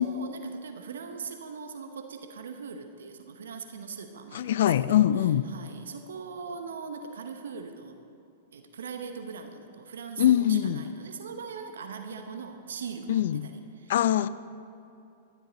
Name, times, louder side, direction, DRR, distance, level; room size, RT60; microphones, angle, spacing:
voice 1, 0.0-5.1 5.5-8.0 8.5-13.5 13.8-13.9, right 5 dB, 75° right, 6 dB, 0.9 m, -40 dB
voice 2, 4.3-5.4 10.2-10.8 13.1-13.5 13.9-14.3, left 11 dB, 65° left, 16 dB, 0.4 m, -23 dB
12.5 x 11.0 x 4.0 m, 2.7 s
hypercardioid pair, 105°, 0 cm